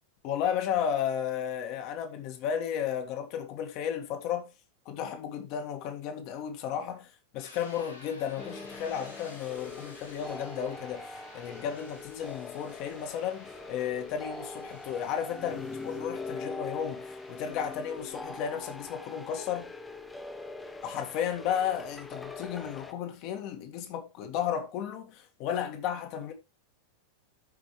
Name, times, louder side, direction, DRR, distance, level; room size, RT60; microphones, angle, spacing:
voice 1, 0.2-4.5 4.9-19.7 20.8-26.3, left 9 dB, 40° left, 1.9 m, -33 dB
sound 1, 7.4-19.0, left 2 dB, 80° left, 6.0 m, -55 dB
sound 2, 8.4-22.9, left 3 dB, 10° left, 1.0 m, -42 dB
13.5 x 5.3 x 3.2 m
figure-of-eight pair, 90°, 0 cm